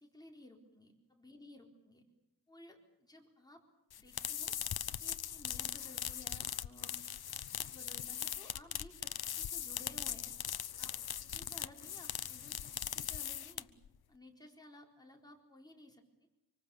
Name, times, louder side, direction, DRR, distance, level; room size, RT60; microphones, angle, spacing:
voice 1, 0.0-2.0 2.5-3.6 4.0-4.5 4.8-6.9 7.3-10.3 10.8-13.7 14.1-16.0, left 1 dB, 10° left, 1 dB, 4.2 m, -57 dB
sound 1, 3.9-13.9, left 10 dB, 80° left, 0.9 m, -40 dB
26.0 x 24.5 x 7.2 m, 0.88 s
wide cardioid pair, 105°, 37 cm